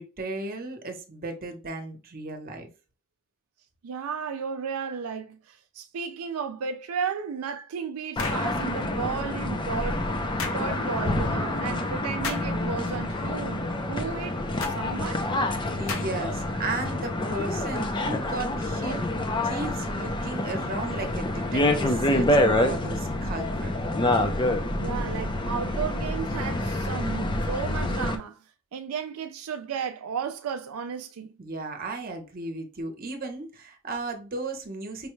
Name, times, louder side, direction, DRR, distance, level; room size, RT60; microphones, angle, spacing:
voice 1, 0.0-2.7 15.8-19.0 19.4-23.7 31.4-35.1, right 2 dB, 45° right, 0.9 m, -35 dB
voice 2, 3.8-10.1 10.5-15.3 24.8-28.4 28.7-31.3, right 6 dB, 85° right, 0.4 m, -34 dB
sound 1, 8.2-8.5 10.4-10.6 12.2-12.5 14.6-14.8 15.9-16.3, left 4 dB, 70° left, 0.9 m, -33 dB
sound 2, 8.2-28.2, left 1 dB, 20° left, 0.5 m, -27 dB
5.2 x 2.3 x 3.1 m
head